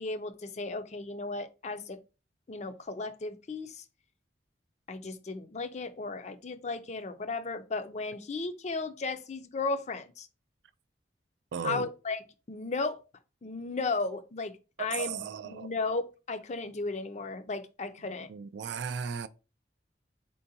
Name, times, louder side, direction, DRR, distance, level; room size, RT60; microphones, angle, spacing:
voice 1, 0.0-2.0 2.5-3.8 4.9-10.3 11.6-12.2 12.5-13.0 13.4-14.5 14.8-18.3, left 3 dB, 40° left, 0.5 m, -35 dB
voice 2, 11.5-11.9 14.8-15.7 18.3-19.3, right 6 dB, 70° right, 0.3 m, -35 dB
4.4 x 3.8 x 2.7 m
head